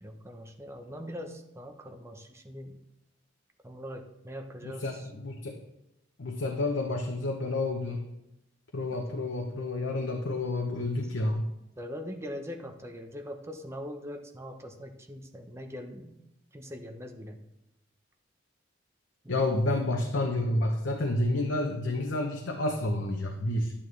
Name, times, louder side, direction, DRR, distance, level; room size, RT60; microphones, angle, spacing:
voice 1, 0.0-2.8 3.6-5.1 11.8-16.1 16.5-17.4 19.2-19.5, equal, 15° right, 4 dB, 0.8 m, -42 dB
voice 2, 4.6-5.6 6.2-8.0 8.7-11.5 19.3-23.7, left 2 dB, 80° left, 2 dB, 0.8 m, -30 dB
11.0 x 8.8 x 3.2 m, 0.88 s
head